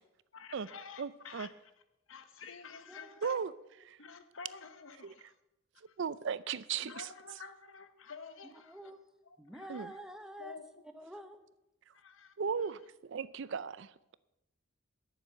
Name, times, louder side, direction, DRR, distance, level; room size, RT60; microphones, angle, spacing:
voice 1, 0.3-1.5 2.1-3.4 4.0-5.3 5.9-6.0 6.8-8.8 9.5-9.8 10.4-10.6 11.9-12.3, left 5 dB, 75° left, 1.0 m, -49 dB
voice 2, 1.0-1.5 3.2-3.5 3.9-4.0 5.0-5.1 6.0-7.1 9.7-9.9 12.4-14.1, right 6 dB, 60° right, 0.4 m, -36 dB
voice 3, 2.9-3.2 3.8-3.9 6.8-6.9 8.5-9.0 9.4-10.6 10.8-11.5, right 1 dB, 5° right, 0.8 m, -49 dB
9.9 x 7.3 x 7.7 m
head